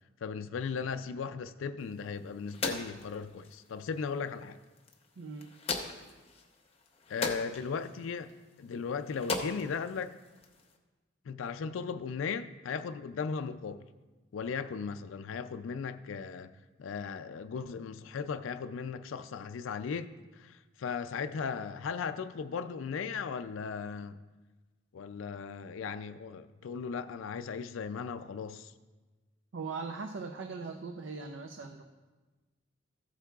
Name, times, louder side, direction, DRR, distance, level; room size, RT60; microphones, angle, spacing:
voice 1, 0.2-4.6 7.1-8.3 8.6-10.2 11.3-13.9 14.3-16.5 16.8-24.2 24.9-28.7, left 5 dB, 80° left, 0.4 m, -37 dB
sound 1, 1.8-10.8, left 3 dB, 30° left, 0.8 m, -41 dB
voice 2, 5.2-5.5 29.5-31.8, right 4 dB, 70° right, 0.5 m, -40 dB
14.5 x 8.2 x 2.4 m
head